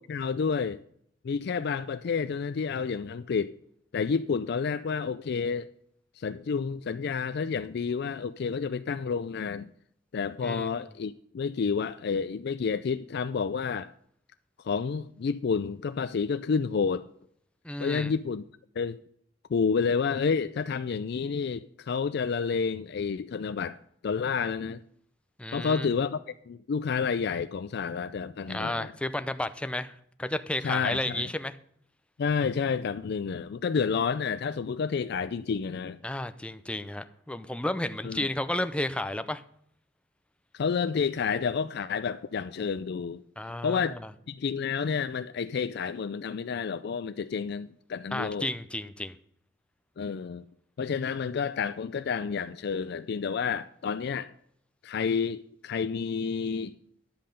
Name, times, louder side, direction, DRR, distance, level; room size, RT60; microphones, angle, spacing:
voice 1, 0.1-0.8 1.2-3.5 3.9-5.7 6.2-9.7 10.1-13.9 14.6-17.0 17.8-18.4 18.8-19.0 19.5-23.8 24.0-24.8 25.5-28.9 30.6-31.3 32.2-36.0 38.0-38.3 40.5-43.2 43.6-44.0 44.3-48.5 50.0-50.4 50.8-54.3 54.8-56.8, left 5 dB, 60° left, 0.4 m, -30 dB
voice 2, 17.6-18.1 25.4-25.9 28.5-29.9 30.2-31.5 36.0-39.4 43.4-44.1 48.1-49.2, left 1 dB, 5° left, 0.5 m, -32 dB
10.5 x 7.7 x 5.2 m
head